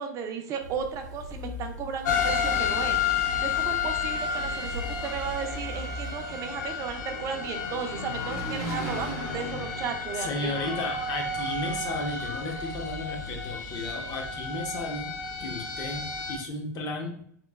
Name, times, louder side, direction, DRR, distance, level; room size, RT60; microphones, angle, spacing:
voice 1, 0.0-3.0 3.4-10.8, right 6 dB, 35° right, 5 dB, 0.3 m, -35 dB
sound 1, 0.6-6.1, left 2 dB, 90° right, 0.5 m, -41 dB
sound 2, 2.0-16.4, left 5 dB, 80° left, 0.5 m, -31 dB
Engine, 4.2-12.9, left 1 dB, 65° left, 1.0 m, -40 dB
voice 2, 10.2-15.1 15.4-17.1, left 3 dB, 40° left, 2 dB, 0.7 m, -34 dB
3.0 x 2.0 x 2.2 m, 0.63 s
hypercardioid pair, 110°, 10 cm